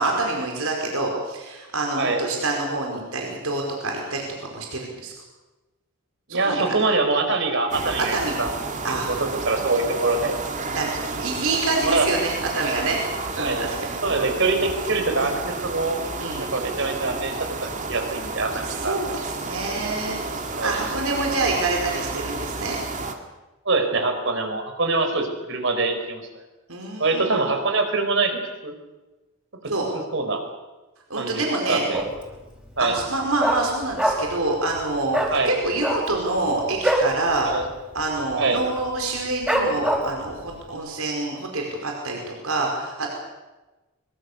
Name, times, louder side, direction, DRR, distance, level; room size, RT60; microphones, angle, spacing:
voice 1, 0.0-5.1 6.3-6.6 8.1-8.4 8.8-9.1 10.7-13.0 13.4-13.9 15.1-15.3 16.1-16.5 18.6-20.2 20.6-22.8 26.7-27.5 29.7-29.9 31.1-31.8 32.8-37.5 37.9-43.1, right 2 dB, 85° right, 0 dB, 5.0 m, -27 dB
voice 2, 6.3-8.5 8.8-9.2 9.4-10.4 11.8-12.1 13.4-13.7 14.0-16.0 16.4-19.2 20.5-20.8 23.6-26.2 27.0-28.7 29.6-29.7 30.1-30.4 31.2-31.4 31.7-32.0 32.8-33.0 35.3-35.5 37.4-37.7 38.3-38.6, right 3 dB, 60° right, 6 dB, 4.5 m, -24 dB
sound 1, 7.7-23.2, right 3 dB, 35° right, 2.3 m, -31 dB
Dog, 31.9-32.3 32.6-32.7 33.0-34.4 34.7-34.8 35.1-35.3 35.7-37.1 37.5-37.7 37.9-38.3 38.8-38.9 39.5-40.3 40.7-40.8, right 1 dB, 5° right, 5.1 m, -23 dB
24.0 x 24.0 x 6.9 m, 1.1 s
head